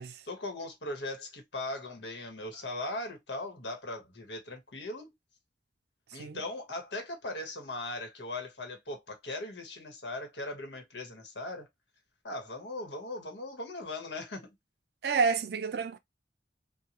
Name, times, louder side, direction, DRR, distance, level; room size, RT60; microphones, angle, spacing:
voice 1, 0.3-5.1 6.1-11.7 12.2-14.5, left 2 dB, 75° left, 1.4 m, -39 dB
voice 2, 15.0-16.0, right 5 dB, 60° right, 0.5 m, -29 dB
4.5 x 2.2 x 2.9 m
head